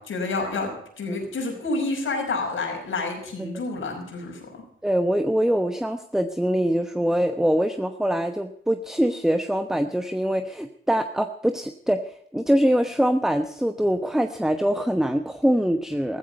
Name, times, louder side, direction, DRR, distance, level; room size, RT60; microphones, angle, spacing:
voice 1, 0.0-4.6, left 3 dB, 80° left, 2 dB, 5.4 m, -29 dB
voice 2, 4.8-16.2, equal, ahead, 7 dB, 1.1 m, -23 dB
15.0 x 15.0 x 5.4 m, 0.67 s
cardioid pair, 70°, 20 cm